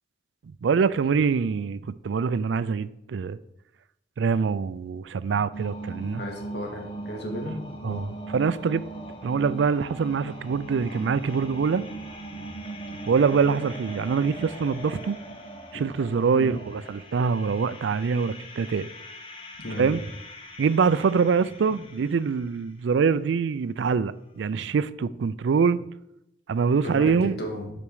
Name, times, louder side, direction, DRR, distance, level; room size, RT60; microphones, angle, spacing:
voice 1, 0.4-3.4 4.2-6.2 7.8-8.8 9.2-11.8 12.4-12.5 13.1-15.2 15.7-18.9 19.8-20.0 20.6-25.9 26.5-27.4, right 5 dB, 85° right, 0.4 m, -24 dB
sound 1, 5.5-22.1, right 2 dB, 30° left, 1.0 m, -40 dB
voice 2, 6.2-8.1 15.7-15.8 16.3-16.6 19.6-19.9 26.8-27.1 27.4-27.7, equal, 65° left, 1.9 m, -34 dB
8.6 x 5.1 x 4.7 m
head